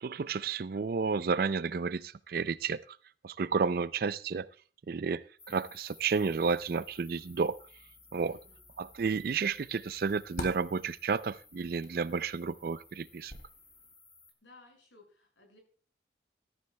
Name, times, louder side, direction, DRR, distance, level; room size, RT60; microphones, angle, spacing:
voice 1, 0.0-3.0 3.2-4.5 4.9-7.6 8.1-8.4 8.8-13.3, right 5 dB, 50° right, 0.4 m, -31 dB
sound 1, 5.4-14.3, left 3 dB, 15° left, 1.5 m, -58 dB
sound 2, 6.0-14.0, left 1 dB, 50° left, 2.5 m, -50 dB
voice 2, 8.2-8.6 14.4-15.6, left 2 dB, 85° left, 6.1 m, -58 dB
14.0 x 13.5 x 2.2 m
head